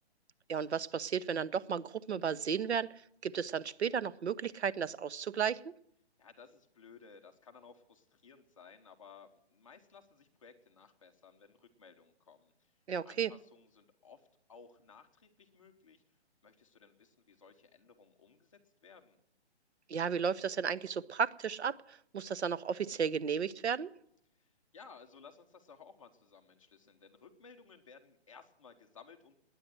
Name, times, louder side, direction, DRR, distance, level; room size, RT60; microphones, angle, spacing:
voice 1, 0.5-2.9 3.2-5.7 12.9-13.3 19.9-23.9, right 7 dB, 75° right, 18 dB, 0.9 m, -34 dB
voice 2, 6.2-12.7 13.0-16.0 16.4-19.2 24.3-29.4, left 5 dB, 30° left, 5 dB, 1.1 m, -58 dB
19.5 x 9.6 x 7.7 m, 0.73 s
hypercardioid pair, 175°, 33 cm